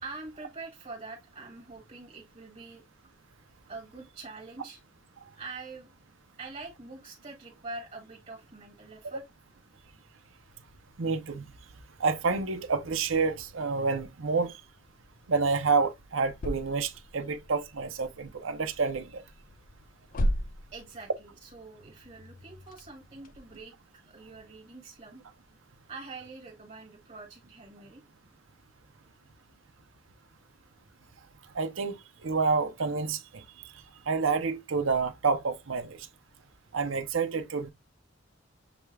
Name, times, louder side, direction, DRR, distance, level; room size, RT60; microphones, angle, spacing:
voice 1, 0.0-2.8 3.7-4.8 5.4-5.9 6.4-9.2 20.7-25.2 25.9-28.0, right 3 dB, 35° right, 1.7 m, -45 dB
sound 1, 10.4-23.6, equal, 45° left, 0.5 m, -40 dB
voice 2, 11.0-11.5 12.0-14.6 15.3-19.2 31.5-33.4 34.1-36.1 36.7-37.7, right 4 dB, 80° right, 0.7 m, -29 dB
6.9 x 2.4 x 3.2 m
head